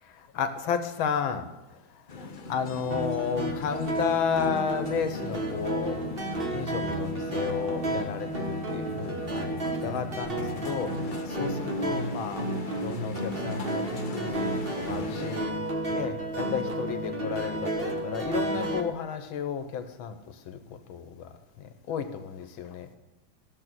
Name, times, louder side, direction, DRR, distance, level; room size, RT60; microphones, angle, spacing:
voice 1, 0.0-1.5 2.5-6.0 6.5-12.5 12.8-15.5 15.9-22.9, left 7 dB, 85° left, 9 dB, 1.8 m, -32 dB
sound 1, 2.1-15.4, left 3 dB, 55° left, 0.5 m, -40 dB
sound 2, 2.9-18.8, right 1 dB, 30° right, 1.7 m, -32 dB
13.5 x 7.3 x 6.2 m, 1.1 s
omnidirectional pair, 2.1 m